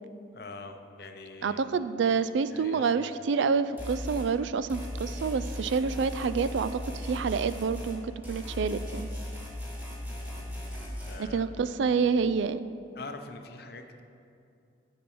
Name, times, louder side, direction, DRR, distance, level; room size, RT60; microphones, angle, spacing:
voice 1, 0.3-1.6 2.5-3.1 10.1-11.5 13.0-14.0, left 3 dB, 55° left, 6 dB, 0.7 m, -45 dB
voice 2, 1.4-8.0 8.3-9.1 11.2-12.7, right 5 dB, 70° right, 13 dB, 0.3 m, -28 dB
sound 1, 3.8-4.3 4.7-8.0 8.2-11.2, left 1 dB, 10° right, 1.5 m, -37 dB
7.0 x 6.1 x 7.7 m, 2.5 s
head